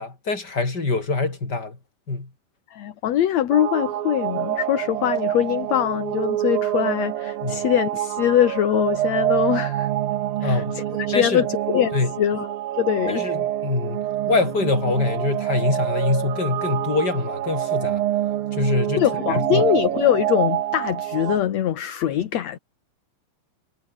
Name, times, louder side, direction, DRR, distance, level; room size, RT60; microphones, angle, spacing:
voice 1, 0.0-1.8 2.1-2.3 7.4-7.6 10.4-10.8 11.1-11.5 11.9-12.1 13.1-18.0 18.5-19.6, left 3 dB, 30° left, 5.1 m, -24 dB
voice 2, 2.7-9.9 10.4-12.5 12.8-13.3 19.0-22.6, left 11 dB, 60° left, 2.4 m, -23 dB
sound 1, 3.5-21.4, right 13 dB, 85° right, 3.2 m, -26 dB
omnidirectional pair, 4.0 m